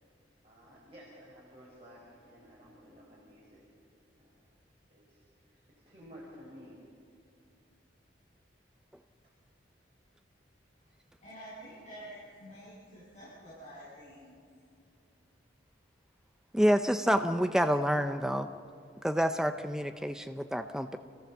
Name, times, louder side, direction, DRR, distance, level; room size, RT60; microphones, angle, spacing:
voice 1, 0.4-3.6 4.2-4.4 4.9-5.2 5.8-6.9, equal, 30° right, -6 dB, 5.2 m, -53 dB
voice 2, 11.2-14.4, equal, 35° left, -10 dB, 7.6 m, -48 dB
voice 3, 16.5-18.5 19.0-21.0, equal, 5° right, 8 dB, 0.6 m, -28 dB
28.5 x 16.5 x 7.2 m, 2.4 s
head